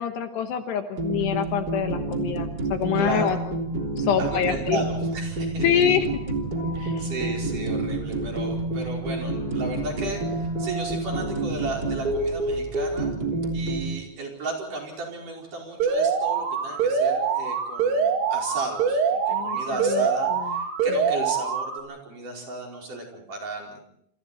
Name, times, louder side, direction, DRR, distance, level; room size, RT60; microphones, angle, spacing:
voice 1, 0.0-3.4 4.0-4.8 5.6-6.1 6.8-7.1 19.3-20.5, left 9 dB, 70° left, 6 dB, 3.0 m, -26 dB
sound 1, 1.0-13.9, right 2 dB, 25° right, 3.2 m, -28 dB
voice 2, 3.0-3.4 4.2-5.7 6.8-13.1 13.5-23.8, right 2 dB, 45° right, 0 dB, 6.1 m, -34 dB
sound 2, 3.1-13.9, right 4 dB, 25° left, 6.0 m, -42 dB
Alarm, 15.8-21.8, right 6 dB, 90° right, 5.1 m, -24 dB
28.0 x 27.0 x 4.3 m, 0.72 s
omnidirectional pair, 5.5 m